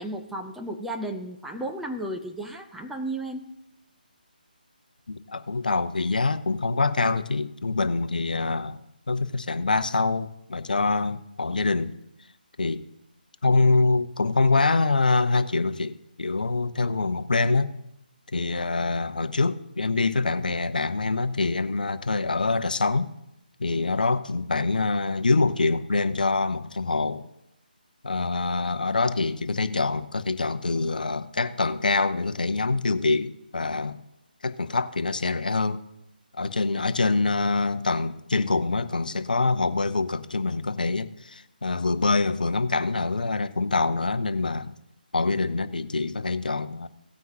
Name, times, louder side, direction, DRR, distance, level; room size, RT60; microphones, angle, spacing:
voice 1, 0.0-3.5, right 1 dB, ahead, 0.4 m, -33 dB
voice 2, 5.1-8.8 9.1-11.9 12.6-12.8 13.4-17.7 18.3-23.1 23.6-27.3 28.0-34.0 34.4-35.8 36.3-44.7 45.1-46.9, left 3 dB, 60° left, 0.7 m, -25 dB
17.0 x 9.3 x 2.8 m
figure-of-eight pair, 150°, 5 cm